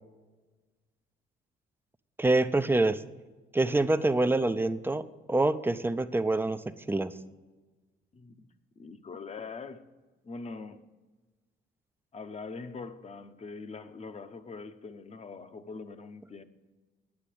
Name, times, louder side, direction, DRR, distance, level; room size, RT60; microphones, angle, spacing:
voice 1, 2.2-3.0 3.5-7.1, right 2 dB, 10° right, 0.5 m, -26 dB
voice 2, 8.1-8.5 8.8-9.9 10.2-10.8 12.1-16.4, left 4 dB, 35° left, 0.9 m, -43 dB
9.6 x 8.6 x 7.7 m
cardioid pair, 90°, 20 cm